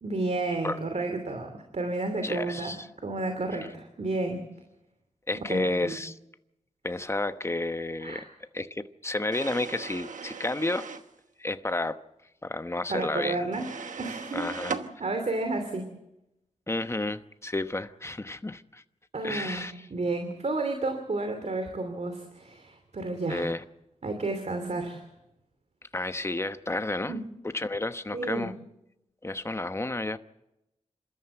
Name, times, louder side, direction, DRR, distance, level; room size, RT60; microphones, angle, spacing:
voice 1, 0.0-2.8 3.0-4.4 5.3-6.0 8.0-8.2 12.9-13.7 14.0-15.9 19.1-23.5 24.0-25.1 27.1-27.2 28.1-28.5, right 2 dB, 65° right, 2.8 m, -31 dB
voice 2, 2.2-2.9 5.3-6.2 6.8-8.2 8.5-10.9 11.4-12.0 12.4-13.4 14.3-14.8 16.7-18.8 19.2-19.9 23.3-23.6 25.9-27.1 27.5-28.5 29.2-30.2, left 2 dB, 20° left, 1.0 m, -31 dB
sound 1, 9.3-11.1 13.5-14.9, right 5 dB, 85° right, 1.2 m, -38 dB
27.0 x 13.5 x 7.9 m
cardioid pair, 60°, 13 cm